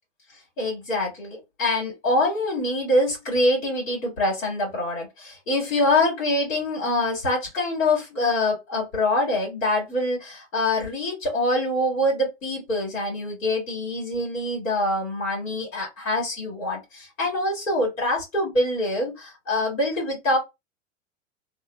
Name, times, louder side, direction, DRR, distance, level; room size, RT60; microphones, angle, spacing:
voice 1, 0.6-20.4, left 1 dB, 80° left, 1.9 m, -25 dB
2.9 x 2.0 x 3.3 m
hypercardioid pair, 95°, 40 cm